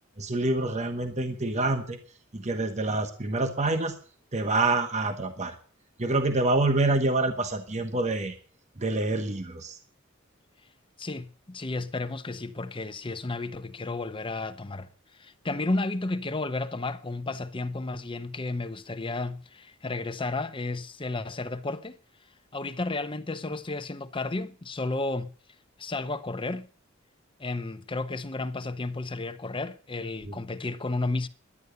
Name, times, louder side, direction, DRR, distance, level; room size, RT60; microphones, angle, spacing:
voice 1, 0.2-2.0 2.3-3.9 4.3-5.6 6.0-8.4 8.8-9.8 30.3-30.4, right 2 dB, 35° right, 1.2 m, -26 dB
voice 2, 11.0-22.0 22.5-25.3 25.8-26.7 27.4-31.3, left 2 dB, 25° left, 0.8 m, -32 dB
11.0 x 9.8 x 8.1 m
head